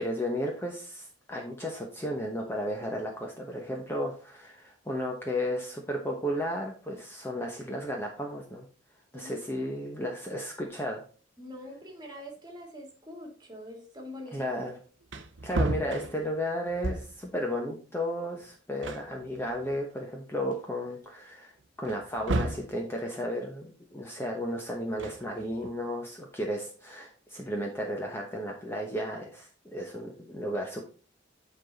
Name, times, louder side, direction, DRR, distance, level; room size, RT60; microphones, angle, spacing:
voice 1, 0.0-8.7 9.1-11.0 14.3-14.8 15.4-21.5 21.8-30.8, equal, 10° left, 0 dB, 1.0 m, -34 dB
voice 2, 11.4-14.6, left 1 dB, 20° right, 1 dB, 2.1 m, -44 dB
Wood, 15.0-17.3 18.4-18.5 18.8-20.0 20.5-20.6 21.8-22.8 24.8-25.7, right 2 dB, 70° right, 0.8 m, -33 dB
9.7 x 4.1 x 4.0 m, 0.37 s
head